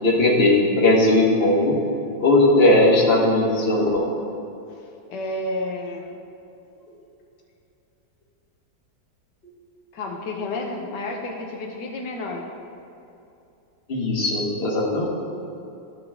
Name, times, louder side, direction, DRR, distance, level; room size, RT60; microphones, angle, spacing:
voice 1, 0.0-1.8 2.2-4.1 13.9-15.0, left 1 dB, 35° left, -3 dB, 1.6 m, -18 dB
voice 2, 5.1-6.2 9.9-12.5, left 2 dB, 85° left, 1 dB, 1.6 m, -30 dB
15.0 x 5.1 x 3.6 m, 2.7 s
omnidirectional pair, 1.8 m